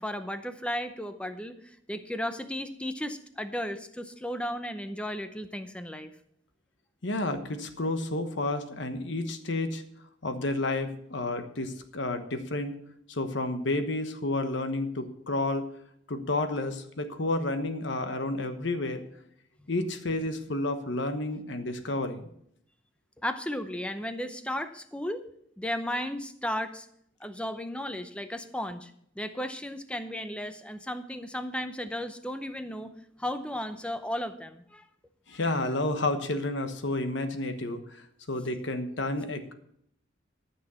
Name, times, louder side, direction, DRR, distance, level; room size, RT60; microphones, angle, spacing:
voice 1, 0.0-6.1 23.2-25.2 25.6-26.9 27.2-28.9 29.2-32.9 33.2-34.8 35.3-35.4, equal, 5° left, 9 dB, 0.7 m, -34 dB
voice 2, 7.0-9.8 10.2-12.8 13.1-15.7 16.1-19.0 19.7-22.3 35.3-37.8 38.3-39.5, left 2 dB, 65° left, 8 dB, 1.2 m, -30 dB
12.5 x 6.2 x 6.9 m, 0.71 s
head